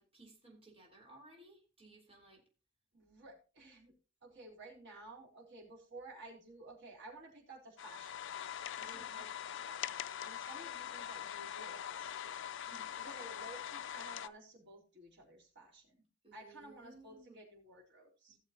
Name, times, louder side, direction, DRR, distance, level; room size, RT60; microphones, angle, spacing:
voice 1, 0.0-2.4 8.8-9.2 12.6-13.0 16.2-17.4 18.3-18.4, right 2 dB, 30° right, -1 dB, 4.1 m, -59 dB
voice 2, 2.9-3.9 4.2-8.5 8.8-12.7 13.0-16.0 16.3-18.4, right 2 dB, 60° right, -3 dB, 4.0 m, -54 dB
sound 1, 7.8-14.3, left 10 dB, 65° left, 0.5 m, -43 dB
17.0 x 7.1 x 2.9 m, 0.35 s
head